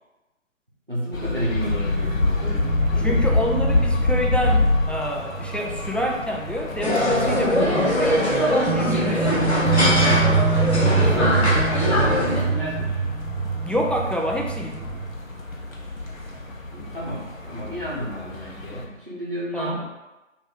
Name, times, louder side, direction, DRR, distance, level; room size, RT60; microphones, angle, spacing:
voice 1, 0.9-3.6 11.1-13.0 16.7-19.8, equal, 40° right, -6 dB, 0.8 m, -32 dB
sound 1, 1.1-18.9, left 2 dB, 80° left, 0.7 m, -27 dB
sound 2, 1.6-7.1 7.4-7.5 8.7-15.2, right 5 dB, 80° right, 0.6 m, -26 dB
voice 2, 3.0-9.8 13.6-15.0 19.5-19.8, equal, 5° left, -1 dB, 0.3 m, -27 dB
sound 3, 6.8-12.4, left 1 dB, 55° left, 0.9 m, -21 dB
2.6 x 2.6 x 3.6 m, 1.1 s
figure-of-eight pair, 175°, 40 cm